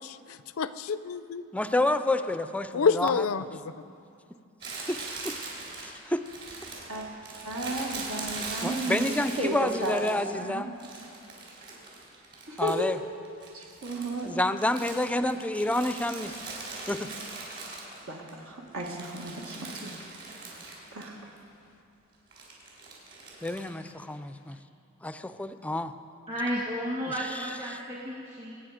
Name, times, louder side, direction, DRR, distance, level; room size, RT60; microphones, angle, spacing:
voice 1, 0.0-1.4 2.7-3.7, left 5 dB, 75° left, 14 dB, 0.5 m, -28 dB
voice 2, 1.5-3.2 4.9-5.0 5.2-5.4 5.8-6.2 8.6-10.7 12.6-13.0 14.2-16.4 16.9-17.1 23.4-24.6 25.0-25.9 27.7-27.8, left 1 dB, 5° left, 11 dB, 0.4 m, -29 dB
Crumpling crinkling, 4.6-10.3 10.8-13.0 13.2-18.3 18.7-21.1 21.4-21.5 22.3-23.7, right 3 dB, 50° right, 4.0 m, -41 dB
voice 3, 7.5-10.0 10.3-10.7 12.5-12.9 13.5-14.3 18.1-19.9 20.9-21.1, right 1 dB, 80° right, -1 dB, 1.8 m, -33 dB
voice 4, 26.3-28.6, equal, 35° right, -5 dB, 1.8 m, -33 dB
23.5 x 9.3 x 5.0 m, 2.5 s
head